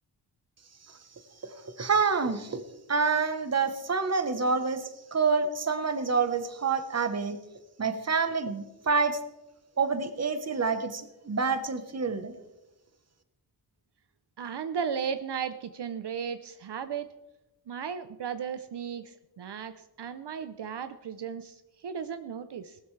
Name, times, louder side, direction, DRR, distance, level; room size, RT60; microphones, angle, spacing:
voice 1, 1.4-2.6 2.9-7.4 7.8-9.2 9.8-12.3, right 5 dB, 35° right, 10 dB, 1.0 m, -27 dB
voice 2, 14.4-17.1 17.7-22.8, right 7 dB, 65° right, 10 dB, 0.7 m, -35 dB
18.5 x 13.0 x 3.3 m, 1.0 s
wide cardioid pair, 155°, 44 cm